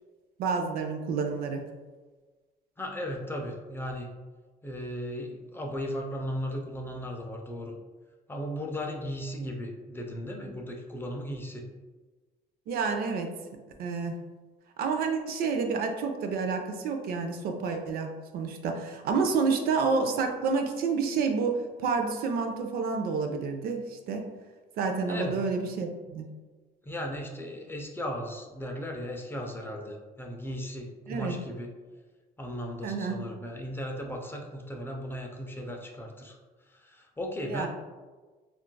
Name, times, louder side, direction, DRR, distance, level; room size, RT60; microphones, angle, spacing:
voice 1, 0.4-1.7 12.7-13.3 13.8-14.2 14.8-24.3 24.8-26.3 31.1-31.4 32.8-33.2 37.5-37.7, right 4 dB, 65° right, 5 dB, 0.4 m, -29 dB
voice 2, 2.8-4.1 4.6-7.7 8.3-11.7 25.1-25.3 26.8-31.7 32.4-36.4 36.7-37.7, equal, 15° left, 1 dB, 0.3 m, -36 dB
3.7 x 2.3 x 2.2 m, 1.3 s
cardioid pair, 110°, 17 cm